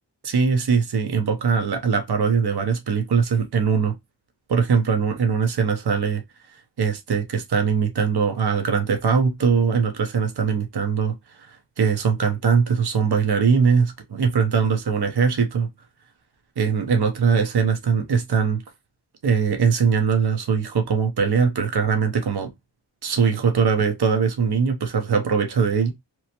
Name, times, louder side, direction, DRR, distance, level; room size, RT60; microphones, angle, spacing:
voice 1, 0.2-3.9 4.5-6.2 6.8-15.7 16.6-18.6 19.2-22.5 23.0-25.9, right 6 dB, 55° right, 0.7 m, -21 dB
3.0 x 2.0 x 2.8 m
cardioid pair, 40°, 46 cm